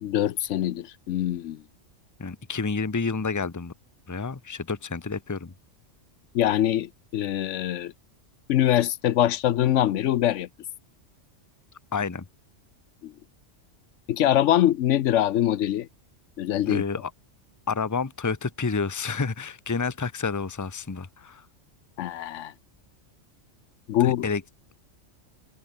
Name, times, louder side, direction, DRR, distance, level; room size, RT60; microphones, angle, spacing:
voice 1, 0.0-1.6 6.3-7.9 8.5-10.5 13.0-13.1 14.1-15.9 16.4-16.8 22.0-22.5 23.9-24.3, left 12 dB, 80° left, 1.0 m, -23 dB
voice 2, 2.2-3.7 4.1-5.5 11.9-12.3 16.7-17.1 17.7-21.5 24.0-24.4, left 4 dB, 15° left, 0.8 m, -29 dB
omnidirectional pair, 1.2 m